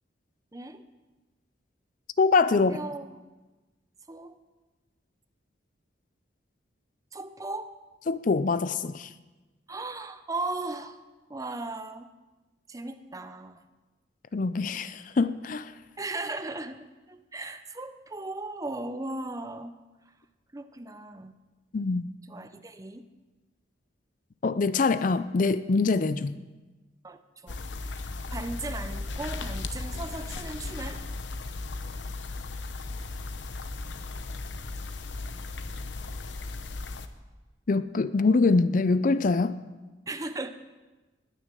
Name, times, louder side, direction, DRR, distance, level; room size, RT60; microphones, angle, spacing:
voice 1, 0.5-0.8 2.5-3.2 4.1-4.4 7.1-7.7 9.7-11.0 11.3-12.1 12.7-13.6 16.0-19.7 20.5-21.4 22.3-23.0 27.0-28.0 28.3-31.0 40.1-40.5, right 2 dB, 20° right, 10 dB, 0.6 m, -37 dB
voice 2, 2.2-2.8 8.1-9.1 14.3-15.7 21.7-22.1 24.4-26.4 37.7-39.6, left 4 dB, 45° left, 14 dB, 0.4 m, -24 dB
sound 1, 27.5-37.1, left 3 dB, 80° left, 0.9 m, -36 dB
19.5 x 6.7 x 7.5 m, 1.2 s
head